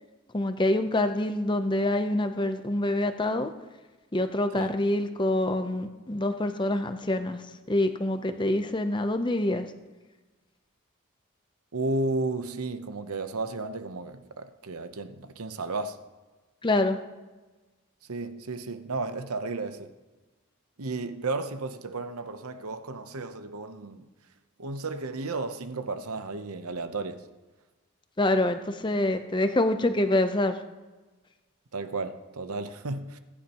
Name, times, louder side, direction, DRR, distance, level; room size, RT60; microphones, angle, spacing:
voice 1, 0.3-3.5 4.1-7.4 7.7-9.7 16.6-17.0 28.2-30.6, left 1 dB, 20° left, 0.7 m, -26 dB
voice 2, 11.7-16.0 18.1-19.9 20.8-24.1 24.6-27.2 31.7-33.2, right 3 dB, 85° right, 0.9 m, -33 dB
20.5 x 10.0 x 3.0 m
head